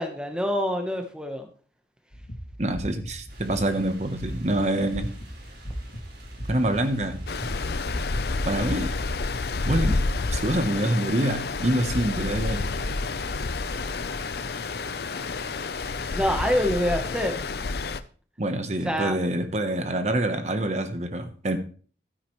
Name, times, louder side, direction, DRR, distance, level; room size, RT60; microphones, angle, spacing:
voice 1, 0.0-1.5 16.1-17.4 18.8-19.2, equal, 5° right, 5 dB, 1.0 m, -26 dB
sound 1, 2.1-8.7, equal, 80° left, 2.4 m, -38 dB
voice 2, 2.6-5.1 6.5-7.2 8.4-8.9 9.6-12.7 18.4-21.6, right 1 dB, 40° right, 8 dB, 1.0 m, -26 dB
sound 2, 3.3-16.6, right 1 dB, 65° right, 4.2 m, -47 dB
Stream, 7.3-18.0, left 3 dB, 60° left, 0.6 m, -29 dB
12.5 x 9.7 x 3.1 m, 0.42 s
head